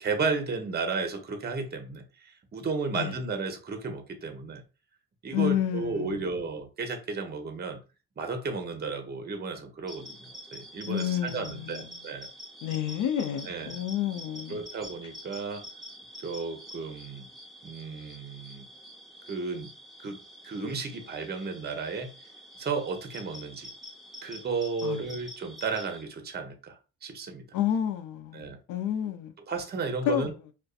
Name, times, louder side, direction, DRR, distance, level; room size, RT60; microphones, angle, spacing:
voice 1, 0.0-4.6 5.2-7.8 8.2-12.3 13.4-13.8 14.5-15.6 16.2-17.3 17.6-18.7 19.3-19.7 20.0-22.1 22.6-23.7 24.2-27.5 28.3-28.6 29.5-30.3, right 4 dB, 35° right, 0.7 m, -33 dB
voice 2, 5.3-6.3 10.9-12.0 12.6-14.6 24.8-25.0 27.5-29.3 30.1-30.3, left 10 dB, 80° left, 0.5 m, -30 dB
sound 1, 9.9-26.0, equal, ahead, 0.8 m, -47 dB
2.6 x 2.2 x 2.3 m
cardioid pair, 90°, 30 cm